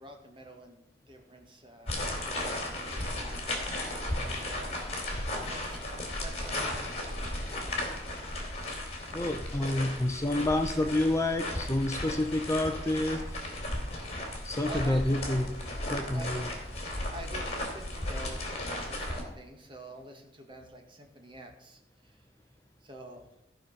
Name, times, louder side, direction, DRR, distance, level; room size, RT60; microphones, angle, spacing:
voice 1, 0.0-3.7 4.4-4.8 5.3-7.6 14.6-15.1 16.1-16.5 17.1-22.2 22.8-23.2, right 1 dB, 30° right, 3 dB, 1.8 m, -47 dB
sound 1, 1.9-19.2, left 1 dB, 40° left, 2.9 m, -35 dB
voice 2, 9.1-13.2 14.4-15.6 15.9-16.5, left 1 dB, 15° left, 5 dB, 0.7 m, -28 dB
14.5 x 5.2 x 6.7 m, 0.87 s
head